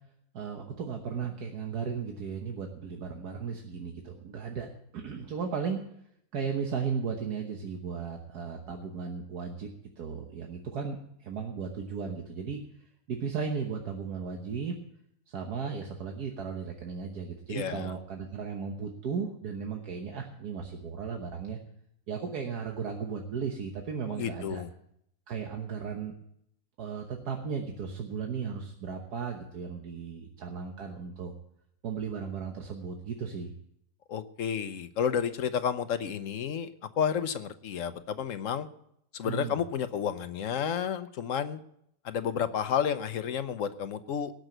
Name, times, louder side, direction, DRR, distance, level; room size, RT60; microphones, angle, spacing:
voice 1, 0.3-4.7 4.9-5.8 6.3-9.7 10.0-12.6 13.1-14.8 15.3-21.6 22.1-24.6 25.3-26.1 26.8-31.3 31.8-33.5 39.2-39.6, right 6 dB, 75° right, 2 dB, 1.7 m, -35 dB
voice 2, 17.5-17.9 24.1-24.7 34.1-38.7 39.1-41.6 42.0-44.3, left 8 dB, 60° left, 11 dB, 1.0 m, -31 dB
18.5 x 6.2 x 7.8 m, 0.73 s
omnidirectional pair, 1.7 m